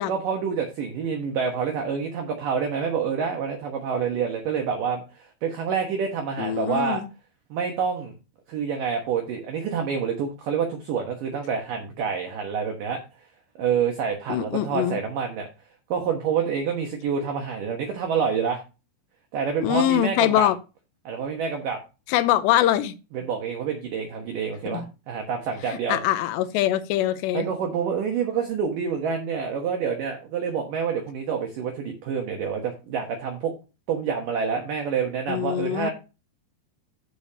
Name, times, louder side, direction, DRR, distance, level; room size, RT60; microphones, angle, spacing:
voice 1, 0.0-7.0 7.5-8.1 8.5-13.0 13.6-15.5 15.9-18.6 19.3-20.5 21.1-21.8 23.1-26.0 27.3-33.5 33.9-35.9, right 6 dB, 65° right, 3 dB, 2.2 m, -27 dB
voice 2, 6.4-7.1 14.3-15.0 19.6-20.6 22.1-22.9 24.7-24.9 25.7-27.5 35.3-35.9, left 12 dB, 80° left, 11 dB, 2.7 m, -23 dB
15.0 x 5.1 x 2.8 m, 0.29 s
omnidirectional pair, 5.5 m